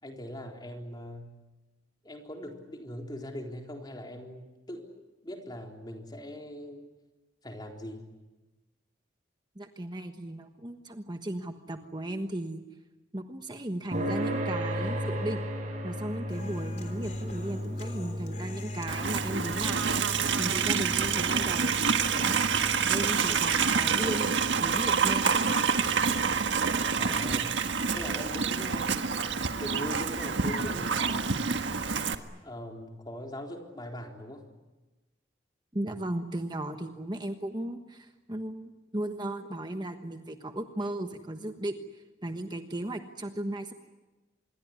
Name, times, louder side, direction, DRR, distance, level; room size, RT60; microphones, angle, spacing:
voice 1, 0.0-1.4 2.0-6.9 7.4-8.1 27.0-27.6 27.9-29.1 29.5-31.5 32.4-34.5, left 1 dB, 25° left, 2 dB, 3.9 m, -41 dB
voice 2, 9.5-12.6 13.1-15.4 15.8-19.9 20.4-22.5 22.9-25.4 35.7-43.7, right 1 dB, 25° right, 6 dB, 1.3 m, -36 dB
sound 1, 13.9-28.8, equal, 45° right, 7.2 m, -37 dB
Human voice, 16.3-24.3, left 1 dB, 40° left, 3.5 m, -45 dB
Livestock farm animals working animals, 18.9-32.2, right 6 dB, 90° right, 1.5 m, -27 dB
26.5 x 22.5 x 9.7 m, 1.1 s
head